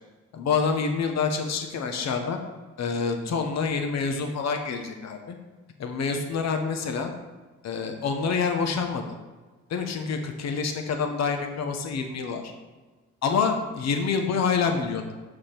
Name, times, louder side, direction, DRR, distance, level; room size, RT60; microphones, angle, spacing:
voice 1, 0.3-2.4 2.8-5.4 5.8-7.1 7.6-9.0 9.7-12.5 13.2-15.1, left 5 dB, 60° left, 5 dB, 1.0 m, -27 dB
6.7 x 4.9 x 5.8 m, 1.3 s
cardioid pair, 90°, 30 cm